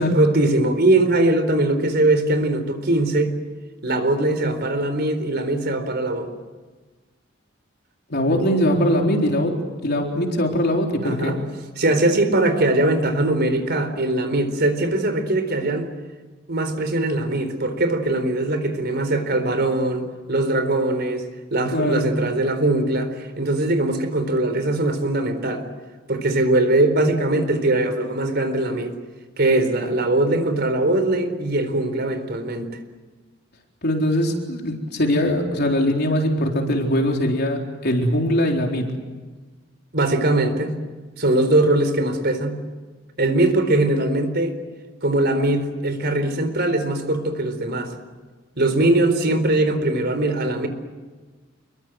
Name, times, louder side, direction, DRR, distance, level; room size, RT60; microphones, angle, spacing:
voice 1, 0.0-3.3 3.8-6.3 11.0-11.4 11.8-15.9 16.5-25.6 26.1-28.9 29.4-32.7 39.9-40.7 41.2-42.6 43.2-44.6 45.0-47.9 48.6-50.7, right 2 dB, 55° right, 9 dB, 4.1 m, -21 dB
voice 2, 8.1-9.5 9.8-11.4 21.7-22.1 33.8-38.9, equal, 55° left, 1 dB, 4.0 m, -21 dB
28.5 x 23.0 x 7.9 m, 1.3 s
head